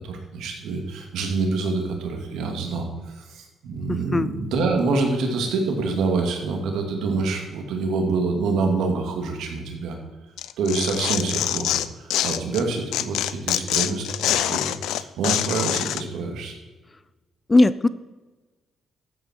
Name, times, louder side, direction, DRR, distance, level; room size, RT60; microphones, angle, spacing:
voice 1, 0.0-10.0 10.6-16.5, right 3 dB, 80° right, 3 dB, 2.5 m, -26 dB
voice 2, 3.9-4.3 17.5-17.9, left 2 dB, 25° left, 17 dB, 0.5 m, -18 dB
Tearing, 10.4-12.6 12.9-16.0, left 12 dB, 85° left, 0.5 m, -25 dB
13.0 x 8.8 x 4.6 m, 1.2 s
cardioid pair, 90°, 0 cm